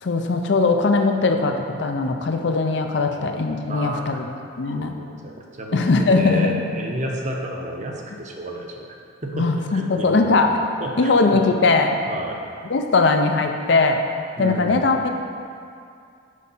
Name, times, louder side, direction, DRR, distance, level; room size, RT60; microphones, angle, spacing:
voice 1, 0.0-4.9 5.7-6.5 9.3-10.5 11.0-11.9 12.7-14.0 14.4-15.1, left 3 dB, 60° left, 5 dB, 0.5 m, -20 dB
voice 2, 3.7-4.2 4.7-5.8 6.1-9.0 9.2-10.5 10.8-11.4 12.1-12.4 14.4-14.9, right 1 dB, 35° right, 0 dB, 0.7 m, -32 dB
6.4 x 5.1 x 5.5 m, 2.4 s
head